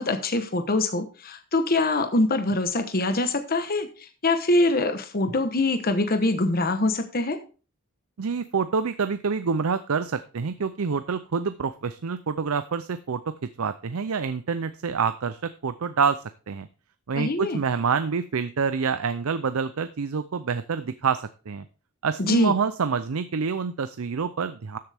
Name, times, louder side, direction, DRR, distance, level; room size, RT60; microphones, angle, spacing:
voice 1, 0.0-7.4 17.1-17.6 22.2-22.5, left 2 dB, 45° left, 7 dB, 1.0 m, -24 dB
voice 2, 8.2-16.7 17.1-21.6 22.0-24.8, right 5 dB, 70° right, 12 dB, 0.5 m, -27 dB
13.5 x 7.7 x 3.5 m, 0.36 s
head